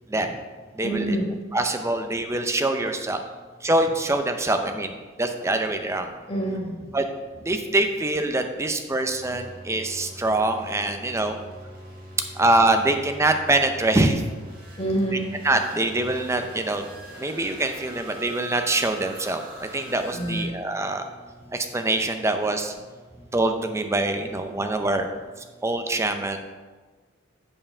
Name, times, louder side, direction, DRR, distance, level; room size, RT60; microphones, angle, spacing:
voice 1, 0.8-1.3 6.3-6.8 14.8-15.3 20.1-20.5, right 1 dB, 30° left, -2 dB, 1.7 m, -26 dB
voice 2, 1.5-3.2 3.6-6.1 6.9-7.0 7.4-11.4 12.4-14.2 15.4-16.9 17.2-21.1 21.5-22.7 23.3-25.1 25.6-26.4, right 2 dB, 15° right, 6 dB, 0.6 m, -24 dB
sound 1, 9.1-20.5, right 1 dB, 45° right, 2.8 m, -43 dB
7.2 x 5.5 x 5.5 m, 1.4 s
head